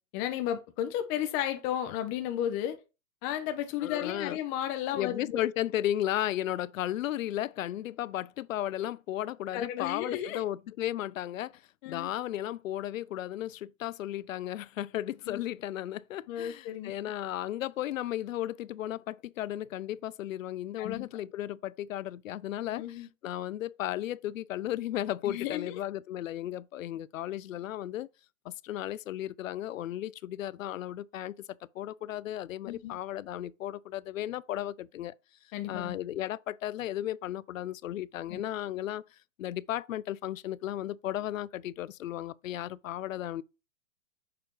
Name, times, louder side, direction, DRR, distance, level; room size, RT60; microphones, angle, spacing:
voice 1, 0.1-2.8 3.2-5.4 9.5-10.4 11.8-12.1 15.3-15.4 16.3-16.9 20.8-21.1 22.7-23.1 25.3-25.7 32.7-33.0 35.5-35.9 38.3-38.4, left 11 dB, 25° left, 0.6 m, -33 dB
voice 2, 3.8-4.4 4.9-28.1 28.4-31.3 31.7-35.1 35.7-39.0 39.4-43.4, left 13 dB, 85° left, 0.5 m, -35 dB
6.7 x 2.9 x 5.1 m
hypercardioid pair, 140°, 39 cm